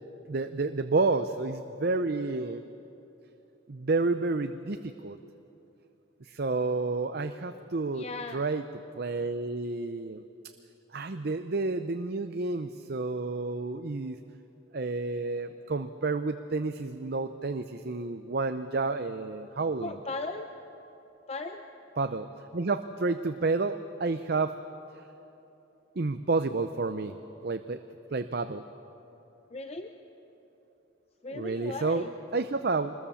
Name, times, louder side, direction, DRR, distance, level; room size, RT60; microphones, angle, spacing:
voice 1, 0.3-2.6 3.7-5.2 6.2-8.7 9.0-10.2 10.9-14.2 14.7-20.0 22.0-22.3 22.5-24.6 24.9-25.0 26.0-27.1 27.4-27.8 28.1-28.6 31.3-32.9, right 3 dB, 50° right, 9 dB, 0.6 m, -30 dB
voice 2, 7.9-8.4 19.8-20.5 21.3-21.6 29.5-29.9 31.2-32.1, left 3 dB, 30° left, 6 dB, 0.7 m, -37 dB
25.0 x 21.0 x 7.1 m, 3.0 s
head